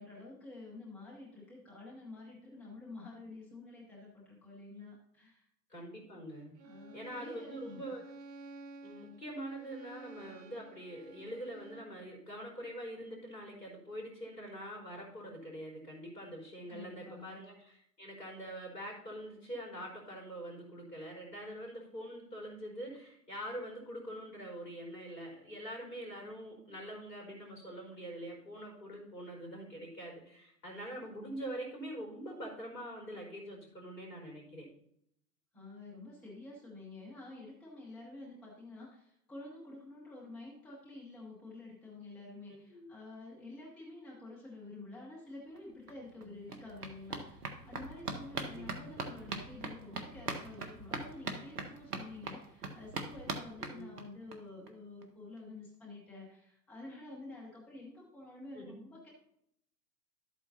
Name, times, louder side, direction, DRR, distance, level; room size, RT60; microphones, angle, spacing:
voice 1, 0.0-5.5 6.6-7.8 16.7-17.4 35.5-59.1, left 2 dB, ahead, -5 dB, 0.4 m, -49 dB
voice 2, 5.7-6.6 6.9-8.0 8.8-34.7 42.7-42.9 46.2-46.5 48.4-49.1 53.6-54.0 58.5-58.7, right 1 dB, 70° left, -1 dB, 4.3 m, -44 dB
Bowed string instrument, 6.6-12.0, right 3 dB, 85° right, 0.7 m, -52 dB
sound 1, 45.6-45.7 45.9-54.4 54.7-54.8 55.0-55.1 55.4-55.5, right 3 dB, 70° right, 1.3 m, -42 dB
12.0 x 8.3 x 2.8 m, 0.74 s
figure-of-eight pair, 105°, 49 cm